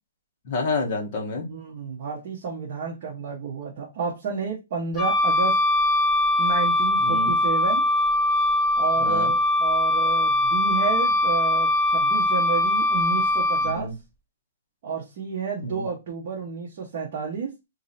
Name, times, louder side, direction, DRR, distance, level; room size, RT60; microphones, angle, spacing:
voice 1, 0.4-1.5 7.0-7.3 9.0-9.3 13.6-13.9 15.6-15.9, left 3 dB, 30° left, 1 dB, 1.0 m, -29 dB
voice 2, 1.4-5.6 6.4-7.8 8.8-13.9 14.8-17.5, right 5 dB, 35° right, -2 dB, 0.8 m, -31 dB
Wind instrument woodwind instrument, 5.0-13.8, left 1 dB, 15° left, 0.4 m, -21 dB
3.1 x 2.7 x 4.0 m, 0.23 s
hypercardioid pair, 175°, 0 cm